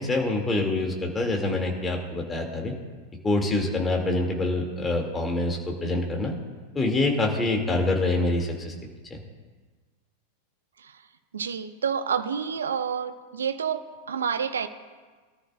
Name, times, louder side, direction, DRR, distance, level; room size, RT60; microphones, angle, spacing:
voice 1, 0.0-2.7 3.2-6.3 6.7-8.7 9.1-9.2, left 2 dB, 15° left, 0 dB, 2.7 m, -26 dB
voice 2, 11.3-14.7, right 7 dB, 70° right, 11 dB, 0.8 m, -29 dB
22.0 x 13.0 x 2.6 m, 1.4 s
figure-of-eight pair, 90°, 0 cm